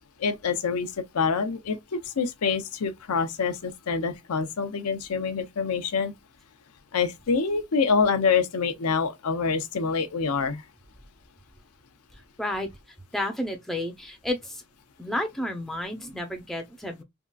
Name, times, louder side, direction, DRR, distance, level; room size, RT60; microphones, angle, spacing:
voice 1, 0.2-6.1 6.9-10.6, left 5 dB, 90° left, 0.6 m, -26 dB
voice 2, 12.4-12.7 13.1-14.6 15.0-17.0, left 1 dB, ahead, 0.5 m, -31 dB
3.6 x 2.3 x 2.3 m
head